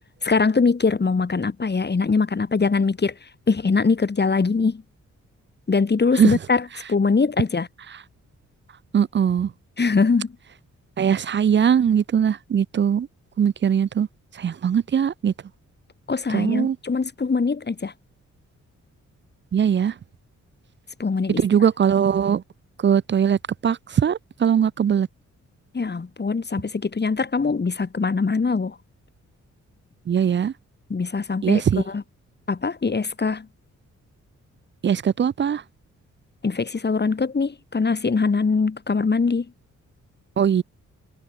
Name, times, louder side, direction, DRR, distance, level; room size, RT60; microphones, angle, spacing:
voice 1, 0.2-4.8 5.7-7.7 9.8-10.3 16.1-17.9 21.0-21.4 25.7-28.8 30.9-32.0 32.5-33.5 36.4-39.5, left 4 dB, 35° left, 4.2 m, -22 dB
voice 2, 8.9-9.5 11.0-13.1 13.4-14.1 14.3-15.3 16.3-16.8 19.5-19.9 21.4-22.4 22.8-25.1 30.1-30.5 31.4-31.8 34.8-35.6 40.4-40.6, right 8 dB, 40° right, 0.5 m, -20 dB
cardioid pair, 90°, 30 cm